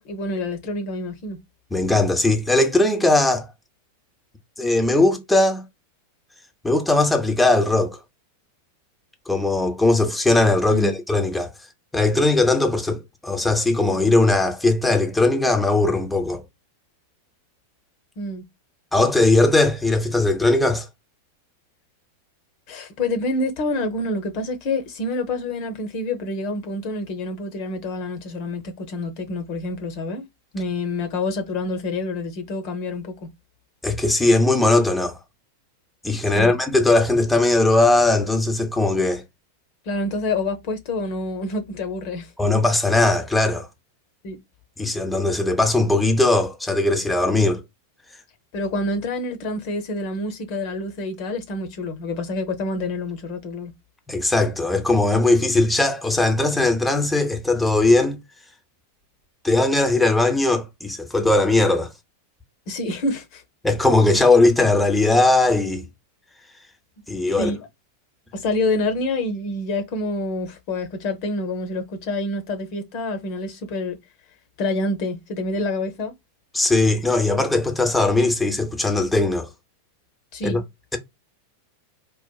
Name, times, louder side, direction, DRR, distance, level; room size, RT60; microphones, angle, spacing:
voice 1, 0.0-1.4 10.7-11.0 18.2-18.4 22.7-30.2 30.5-33.3 36.3-36.6 39.9-42.3 44.2-44.4 48.5-53.7 62.7-63.4 67.4-67.7 68.3-74.0 74.6-76.1 80.3-80.6, left 2 dB, 45° left, 0.9 m, -27 dB
voice 2, 1.7-3.5 4.6-5.6 6.6-8.0 9.3-11.5 11.9-16.4 18.9-20.9 33.8-35.2 36.0-39.2 42.4-43.7 44.8-47.6 54.1-58.2 59.4-61.9 63.6-65.8 67.1-67.5 76.5-79.5 80.4-80.6, left 2 dB, 5° left, 0.8 m, -19 dB
4.1 x 2.4 x 2.3 m
figure-of-eight pair, 90°, 0 cm